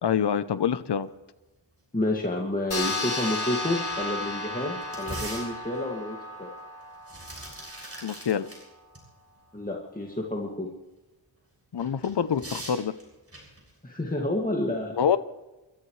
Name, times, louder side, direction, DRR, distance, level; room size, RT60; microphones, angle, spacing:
voice 1, 0.0-1.1 8.0-8.5 11.7-12.9 15.0-15.2, left 8 dB, 55° left, 14 dB, 0.8 m, -26 dB
voice 2, 1.9-6.5 9.5-10.7 13.8-14.9, left 1 dB, 15° left, -1 dB, 2.1 m, -29 dB
sound 1, 2.7-7.6, left 1 dB, 75° left, 3.7 m, -33 dB
sound 2, 2.8-2.9 3.3-3.4 3.8-5.9 6.8-8.6 9.0-9.1 11.8-13.7, right 1 dB, 30° right, 6.9 m, -41 dB
29.0 x 14.0 x 3.2 m, 1.1 s
wide cardioid pair, 70°, 49 cm